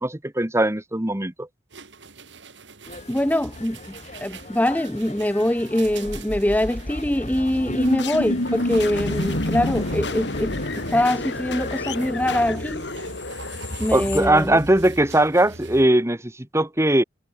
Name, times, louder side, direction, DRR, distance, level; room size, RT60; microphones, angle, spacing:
voice 1, 0.0-1.5 13.9-17.0, right 1 dB, 15° right, 1.8 m, -20 dB
sound 1, 1.7-15.9, right 3 dB, 85° right, 5.0 m, -43 dB
sound 2, 2.8-12.1, left 3 dB, 40° left, 3.8 m, -41 dB
voice 2, 3.1-3.8 4.2-12.8 13.8-14.6, left 1 dB, 10° left, 1.1 m, -23 dB
sound 3, 5.8-15.0, left 1 dB, 70° left, 3.4 m, -29 dB
head